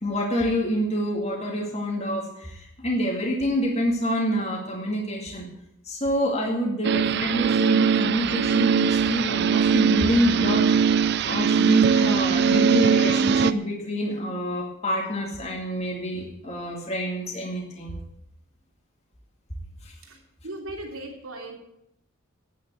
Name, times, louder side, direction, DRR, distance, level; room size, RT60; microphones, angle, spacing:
voice 1, 0.0-5.5 5.8-10.6 11.3-18.0 19.8-19.9, equal, 30° left, -1 dB, 2.3 m, -27 dB
sound 1, 6.8-13.5, right 6 dB, 50° right, 0.4 m, -21 dB
voice 2, 20.4-21.6, right 1 dB, 75° right, 1 dB, 3.0 m, -37 dB
9.5 x 9.4 x 9.3 m, 0.80 s
head